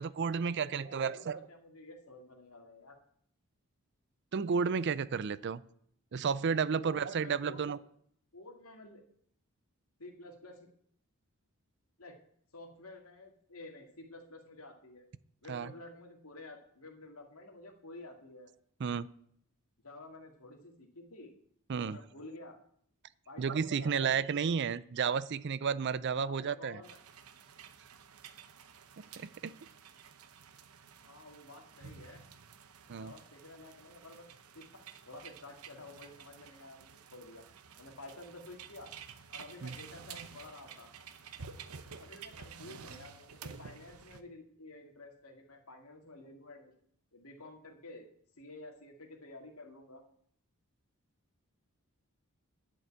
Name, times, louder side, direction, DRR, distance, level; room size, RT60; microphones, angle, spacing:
voice 1, 0.0-1.4 4.3-5.6 6.1-7.8 15.5-15.7 18.8-19.1 21.7-22.0 23.4-26.8 29.2-29.5 32.9-33.1 39.6-39.8, right 6 dB, 50° right, 18 dB, 0.4 m, -32 dB
voice 2, 0.5-3.0 6.7-7.8 8.3-9.0 10.0-10.7 12.0-12.2 12.5-15.1 15.4-18.5 19.8-21.3 21.7-22.6 23.3-24.3 26.2-27.0 31.0-32.2 32.9-34.3 34.5-34.7 35.1-37.5 37.8-38.9 39.3-40.9 41.9-46.7 47.1-48.1 48.4-50.0, left 2 dB, 75° left, 3 dB, 2.3 m, -51 dB
sound 1, 26.8-44.2, right 6 dB, 80° right, 0.8 m, -51 dB
11.0 x 5.4 x 8.6 m, 0.66 s
head